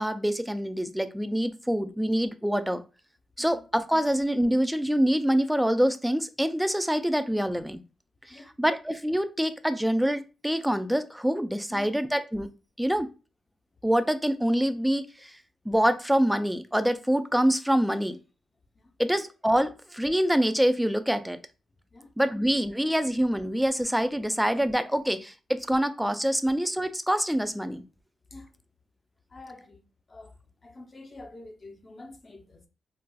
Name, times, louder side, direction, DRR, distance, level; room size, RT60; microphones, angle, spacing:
voice 1, 0.0-2.8 3.4-7.8 8.3-12.5 12.8-13.1 13.8-15.4 15.7-18.2 19.0-21.4 22.2-27.8, equal, 5° right, 0.4 m, -25 dB
voice 2, 29.3-29.8 30.1-30.4 30.6-32.7, left 2 dB, 35° left, 0.6 m, -47 dB
4.0 x 2.3 x 2.2 m
cardioid pair, 75°, 0 cm